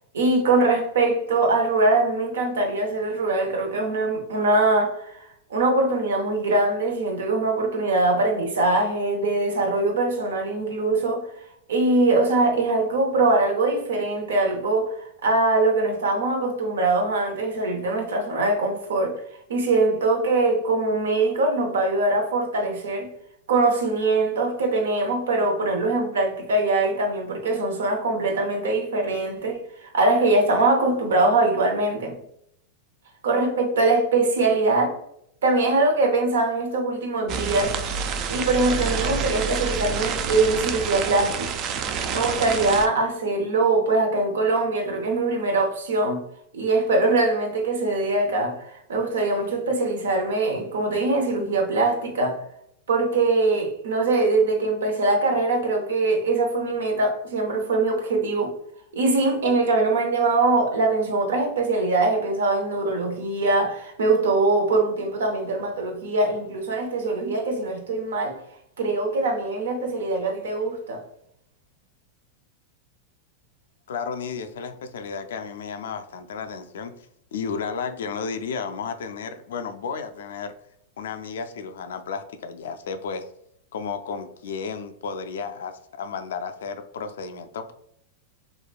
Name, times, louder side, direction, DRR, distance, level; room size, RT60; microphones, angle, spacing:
voice 1, 0.1-11.3 11.7-19.2 19.5-23.1 23.5-32.2 33.2-34.9 35.4-37.8 38.3-41.5 42.1-46.2 46.5-52.4 52.9-58.5 58.9-68.4 68.8-71.0, right 2 dB, 80° right, 0.7 m, -22 dB
sound 1, 37.3-42.9, right 6 dB, 45° right, 0.3 m, -28 dB
voice 2, 73.9-76.9 77.3-80.5 81.0-83.3 83.7-87.7, left 5 dB, 75° left, 0.3 m, -33 dB
3.0 x 2.2 x 2.3 m
hypercardioid pair, 105°, 0 cm